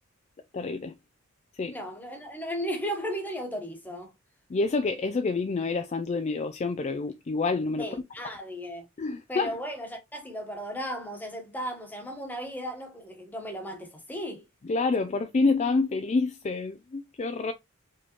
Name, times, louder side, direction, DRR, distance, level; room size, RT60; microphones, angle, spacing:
voice 1, 0.5-0.9 1.5-1.8 4.5-7.9 9.0-9.5 14.6-17.5, left 3 dB, 35° left, 0.3 m, -28 dB
voice 2, 1.7-4.1 7.8-8.8 9.3-14.4 14.9-15.0, equal, 10° left, 1.2 m, -35 dB
4.9 x 3.6 x 3.0 m
head